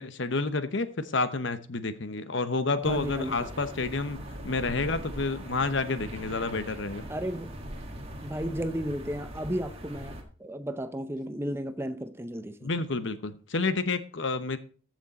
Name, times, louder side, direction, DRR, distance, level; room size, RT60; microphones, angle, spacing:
voice 1, 0.0-7.1 12.6-14.6, left 3 dB, 60° left, 1.0 m, -29 dB
voice 2, 2.8-3.5 7.1-7.5 8.2-12.7, equal, 10° right, 0.6 m, -34 dB
sound 1, 2.8-10.2, right 1 dB, 30° right, 1.8 m, -41 dB
14.5 x 6.3 x 4.2 m
head